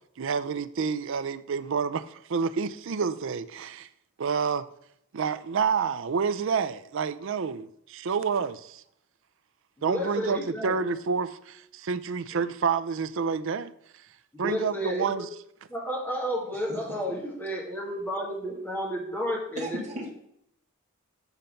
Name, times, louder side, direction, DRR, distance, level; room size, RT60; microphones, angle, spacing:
voice 1, 0.2-3.9 4.2-4.7 5.1-8.8 9.8-13.7 14.4-15.3, right 5 dB, 60° right, 0.4 m, -29 dB
voice 2, 9.8-10.7 14.3-15.1 15.7-19.8, equal, 10° left, 1.8 m, -31 dB
voice 3, 16.7-17.0 19.5-20.1, equal, 35° right, 1.4 m, -36 dB
7.1 x 4.4 x 5.2 m
head